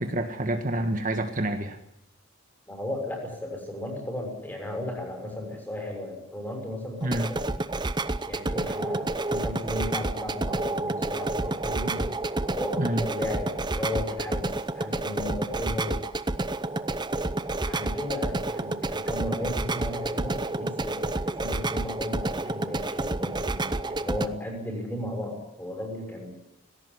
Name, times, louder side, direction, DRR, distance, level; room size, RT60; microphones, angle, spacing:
voice 1, 0.0-1.8 7.0-7.3 12.8-13.1, right 1 dB, 40° right, 6 dB, 1.5 m, -28 dB
voice 2, 2.7-7.5 8.2-12.1 12.5-16.0 17.6-26.3, left 1 dB, 10° left, 3 dB, 6.2 m, -35 dB
sound 1, 7.0-24.3, right 2 dB, 20° right, 0.7 m, -29 dB
19.0 x 17.0 x 9.8 m, 0.86 s
head